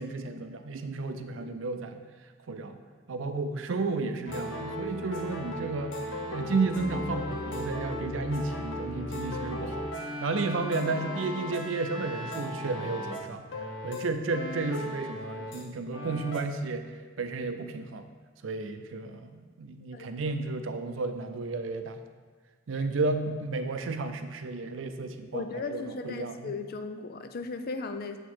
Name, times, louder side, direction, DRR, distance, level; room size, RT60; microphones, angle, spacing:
voice 1, 0.0-2.0 2.5-2.8 3.1-6.0 6.3-13.4 13.8-18.0 18.4-22.0 22.7-26.5, right 3 dB, 85° right, 8 dB, 0.5 m, -32 dB
sound 1, 4.3-15.6 15.9-16.5, left 1 dB, 70° left, 0.9 m, -37 dB
voice 2, 25.3-28.2, left 4 dB, 50° left, 8 dB, 0.5 m, -36 dB
7.1 x 4.6 x 4.3 m, 1.4 s
head